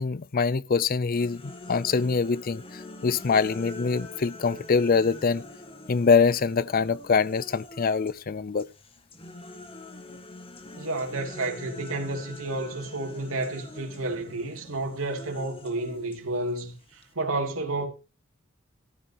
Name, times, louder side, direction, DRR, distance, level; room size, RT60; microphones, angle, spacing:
voice 1, 0.0-5.4 5.9-8.7, left 5 dB, 45° left, 0.5 m, -24 dB
sound 1, 1.1-8.2 8.6-17.1, left 2 dB, 25° left, 1.7 m, -45 dB
voice 2, 10.8-17.9, right 2 dB, 80° right, 3.0 m, -31 dB
14.0 x 11.5 x 3.0 m
head